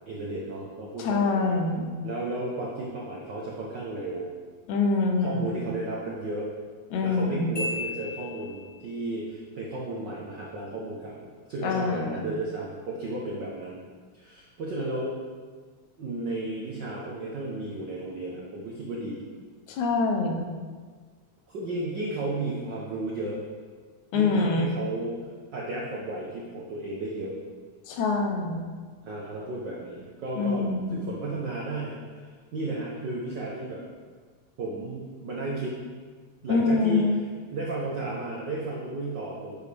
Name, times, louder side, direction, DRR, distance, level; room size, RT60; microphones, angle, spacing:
voice 1, 0.1-1.5 2.0-4.3 5.2-6.5 7.0-13.8 14.1-15.2 16.0-19.2 21.5-23.4 24.1-25.2 25.5-27.4 29.0-33.8 34.6-35.8 36.4-37.1 37.5-39.6, right 2 dB, 75° right, -4 dB, 1.0 m, -34 dB
voice 2, 1.0-1.9 4.7-5.6 6.9-7.6 11.6-12.3 19.7-20.5 24.1-24.7 27.9-28.6 30.4-31.1 36.5-37.2, left 3 dB, 80° left, 3 dB, 2.2 m, -25 dB
Marimba xylophone, 7.5-9.0, left 2 dB, 15° left, 1.0 m, -35 dB
8.8 x 6.9 x 3.4 m, 1.5 s
omnidirectional pair, 3.4 m